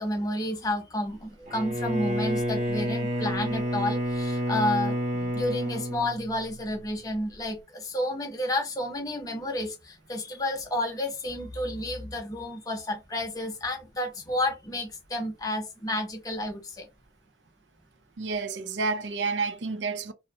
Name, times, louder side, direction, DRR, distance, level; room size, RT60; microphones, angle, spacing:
voice 1, 0.0-16.9, left 1 dB, 20° left, 0.6 m, -31 dB
Bowed string instrument, 1.5-6.8, right 1 dB, 40° right, 0.7 m, -29 dB
voice 2, 18.2-20.1, right 4 dB, 80° right, 0.5 m, -30 dB
2.5 x 2.0 x 2.7 m
head